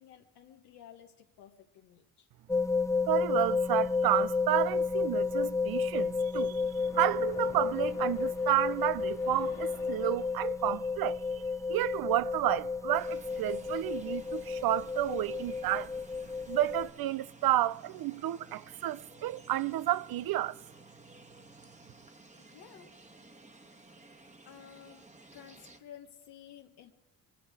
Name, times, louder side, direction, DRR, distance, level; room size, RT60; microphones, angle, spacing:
voice 1, 0.0-2.3 22.4-22.9 24.4-25.1 25.3-26.9, left 9 dB, 85° left, 1.4 m, -53 dB
sound 1, 2.5-16.9, left 4 dB, 10° left, 0.5 m, -32 dB
voice 2, 3.1-11.4 11.7-15.9 16.5-20.6, right 13 dB, 70° right, 0.6 m, -31 dB
Splash splatter, 6.7-10.8, left 7 dB, 60° left, 2.3 m, -51 dB
sound 2, 12.9-25.8, right 2 dB, 20° right, 1.4 m, -55 dB
23.0 x 12.0 x 4.9 m
cardioid pair, 75°, 37 cm